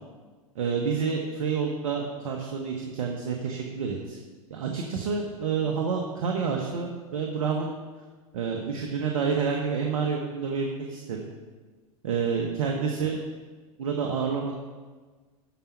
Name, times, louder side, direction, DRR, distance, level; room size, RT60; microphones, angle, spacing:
voice 1, 0.5-4.2 4.5-7.7 8.3-11.2 12.0-13.2 13.8-14.6, right 5 dB, 70° right, 1 dB, 1.3 m, -28 dB
13.0 x 5.2 x 5.8 m, 1.4 s
hypercardioid pair, 95°, 18 cm